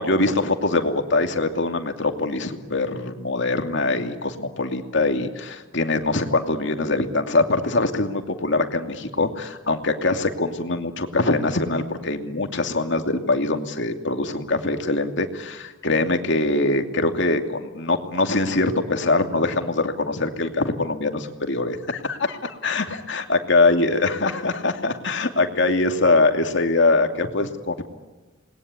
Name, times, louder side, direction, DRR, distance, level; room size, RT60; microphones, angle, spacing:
voice 1, 0.0-27.8, left 2 dB, 65° left, 5 dB, 2.7 m, -23 dB
27.5 x 21.0 x 9.6 m, 1.2 s
head